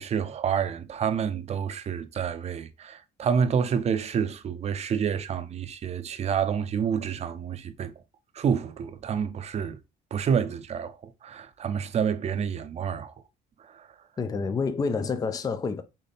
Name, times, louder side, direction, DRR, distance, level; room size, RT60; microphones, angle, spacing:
voice 1, 0.0-7.9 8.3-9.8 10.1-13.1 13.6-13.9, right 7 dB, 40° right, 0.6 m, -28 dB
voice 2, 14.2-15.8, left 4 dB, 20° left, 0.5 m, -28 dB
4.1 x 3.2 x 3.5 m
cardioid pair, 110°, 17 cm